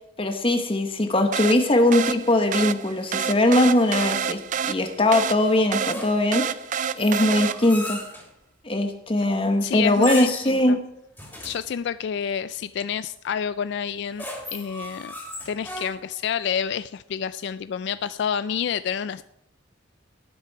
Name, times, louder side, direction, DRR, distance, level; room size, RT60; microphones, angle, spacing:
voice 1, 0.2-4.4 4.7-6.5 6.9-8.0 8.6-10.8, left 1 dB, 25° left, 5 dB, 1.0 m, -21 dB
sound 1, 1.3-7.9, right 7 dB, 40° right, 0.4 m, -29 dB
sound 2, 5.8-6.4 7.0-8.3 9.9-10.6 11.2-11.7 13.9-16.2, equal, 10° left, 2.9 m, -36 dB
voice 2, 9.6-10.8 11.4-14.2 14.5-15.1 15.5-19.2, left 7 dB, 60° left, 14 dB, 0.3 m, -28 dB
18.5 x 6.9 x 4.7 m, 0.81 s
head